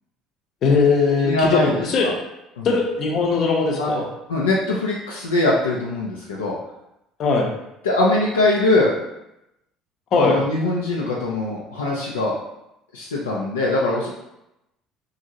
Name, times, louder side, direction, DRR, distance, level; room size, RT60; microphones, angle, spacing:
voice 1, 0.6-2.1 2.6-4.0 7.2-7.5 10.1-10.4, left 4 dB, 50° left, 0 dB, 0.7 m, -19 dB
voice 2, 1.2-2.1 2.6-2.7 3.8-4.0 4.3-6.6 7.8-8.9 10.2-12.4 12.9-14.1, left 2 dB, 80° left, -4 dB, 0.4 m, -22 dB
2.9 x 2.5 x 2.7 m, 0.87 s
hypercardioid pair, 60°, 0 cm